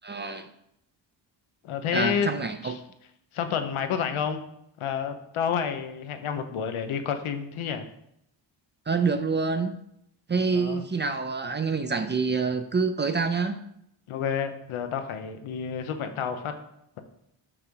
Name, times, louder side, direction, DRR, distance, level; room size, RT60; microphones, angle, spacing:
voice 1, 0.0-0.5 1.9-2.8 8.9-9.7 10.3-13.6, right 4 dB, 25° right, 8 dB, 0.4 m, -26 dB
voice 2, 1.6-2.3 2.6-2.8 3.3-4.4 4.8-7.9 10.5-10.8 14.1-16.5, left 7 dB, 90° left, 7 dB, 0.9 m, -29 dB
5.9 x 5.0 x 4.6 m, 0.76 s
cardioid pair, 120°, 48 cm